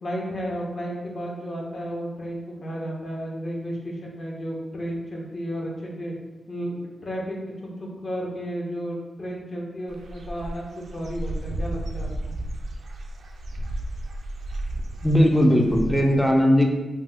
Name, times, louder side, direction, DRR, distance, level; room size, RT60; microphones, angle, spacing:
voice 1, 0.0-6.1 6.5-7.5 7.8-12.3, equal, 45° left, -3 dB, 0.6 m, -33 dB
Dog / Bird, 9.9-16.2, right 1 dB, 80° right, 0.3 m, -33 dB
voice 2, 15.0-16.7, equal, 5° left, 2 dB, 0.3 m, -18 dB
2.8 x 2.1 x 3.3 m, 1.1 s
wide cardioid pair, 155°, 0 cm